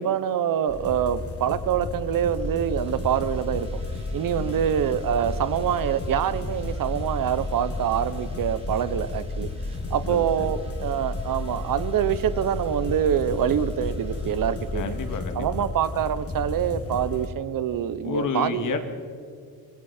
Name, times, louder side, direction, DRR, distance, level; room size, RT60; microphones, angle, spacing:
voice 1, 0.0-3.8 4.1-9.5 9.9-14.9 15.3-18.7, right 9 dB, 60° right, 14 dB, 1.0 m, -25 dB
sound 1, 0.7-17.3, left 2 dB, 35° left, 2.1 m, -34 dB
sound 2, 2.2-15.3 15.6-15.8, left 2 dB, 15° right, 2.6 m, -36 dB
voice 2, 4.4-4.7 10.0-10.2 14.7-15.5 18.0-18.9, left 5 dB, 55° left, 6 dB, 2.5 m, -30 dB
27.0 x 22.5 x 4.5 m, 2.4 s
cardioid pair, 135°, 38 cm